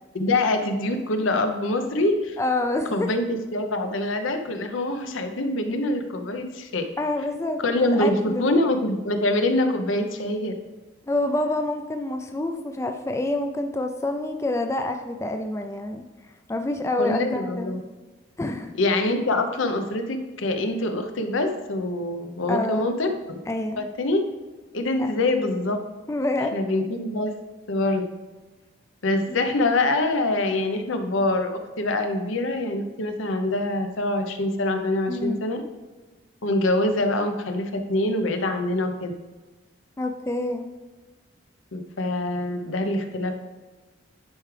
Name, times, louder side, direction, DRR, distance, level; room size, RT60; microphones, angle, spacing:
voice 1, 0.1-2.4 2.9-6.9 7.6-10.5 17.0-17.8 18.8-23.1 23.8-24.2 24.7-25.8 26.5-27.4 27.7-28.1 29.0-35.6 36.4-39.1 41.7-43.3, left 2 dB, 75° left, 7 dB, 0.7 m, -25 dB
voice 2, 2.4-3.1 7.0-8.6 11.1-16.0 16.5-17.8 18.4-18.8 22.5-22.9 23.5-23.8 25.0-25.1 26.1-26.6 29.3-29.4 35.1-35.5 40.0-40.7, left 2 dB, 15° left, 5 dB, 0.3 m, -27 dB
10.5 x 4.7 x 3.3 m, 1.2 s
head